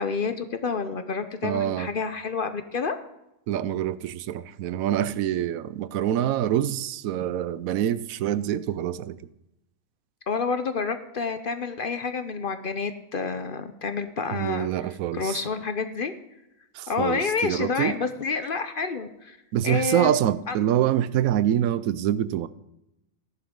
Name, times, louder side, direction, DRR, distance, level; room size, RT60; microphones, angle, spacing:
voice 1, 0.0-3.0 10.3-16.1 16.9-19.4 19.6-20.1 20.5-20.6, left 5 dB, 50° left, 0.7 m, -29 dB
voice 2, 1.4-1.9 3.5-9.2 14.3-15.4 16.8-18.0 19.5-22.5, right 11 dB, 90° right, 1.0 m, -25 dB
14.5 x 11.0 x 3.7 m
omnidirectional pair, 1.4 m